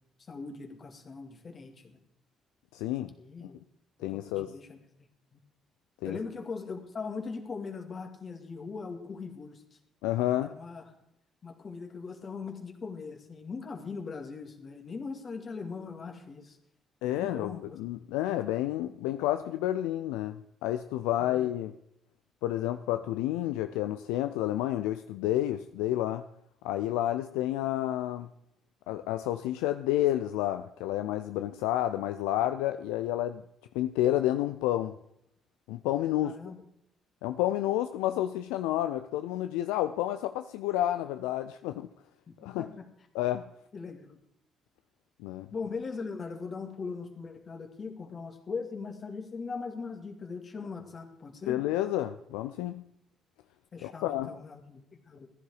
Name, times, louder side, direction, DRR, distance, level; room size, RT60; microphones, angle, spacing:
voice 1, 0.2-2.0 3.2-3.6 4.1-4.8 5.3-5.4 6.0-9.8 10.4-10.8 11.4-16.6 17.2-17.8 18.2-18.4 21.2-21.4 36.2-36.5 42.3-42.9 43.7-44.2 45.5-51.6 53.7-55.3, left 4 dB, 45° left, 4 dB, 2.4 m, -40 dB
voice 2, 2.7-3.1 4.0-4.5 6.0-6.2 10.0-10.6 17.0-21.8 22.4-26.2 26.6-28.3 28.9-33.4 33.7-34.9 35.7-36.4 37.2-41.9 42.4-42.7 43.1-43.5 45.2-45.5 51.5-52.8 53.8-54.3, left 13 dB, 80° left, 9 dB, 0.4 m, -30 dB
15.0 x 11.0 x 4.9 m, 0.77 s
hypercardioid pair, 50°, 0 cm